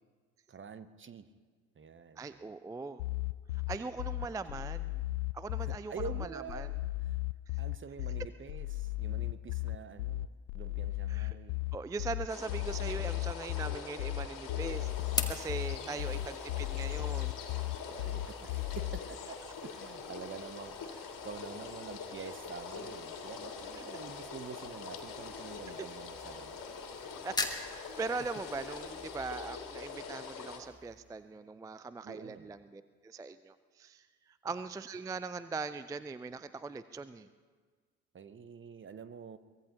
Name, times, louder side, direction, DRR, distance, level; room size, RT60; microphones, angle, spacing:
voice 1, 0.5-1.3 1.8-2.2 3.8-4.6 5.6-6.7 7.1-7.2 7.6-11.6 15.7-16.3 17.9-20.8 21.2-26.7 32.0-32.6 34.4-34.5 38.1-39.4, right 6 dB, 25° right, 13 dB, 0.9 m, -47 dB
voice 2, 2.2-3.0 3.5-5.0 5.3-5.9 6.2-6.7 11.1-11.4 11.7-17.4 25.7-25.8 27.2-37.3, right 4 dB, 10° right, 14 dB, 0.4 m, -41 dB
sound 1, 3.0-19.0, left 17 dB, 70° left, 0.5 m, -36 dB
sound 2, 12.3-30.6, left 5 dB, 45° left, 2.5 m, -44 dB
sound 3, 14.3-31.3, left 2 dB, 10° left, 1.6 m, -45 dB
23.5 x 19.0 x 2.9 m, 1.5 s
figure-of-eight pair, 50°, 44 cm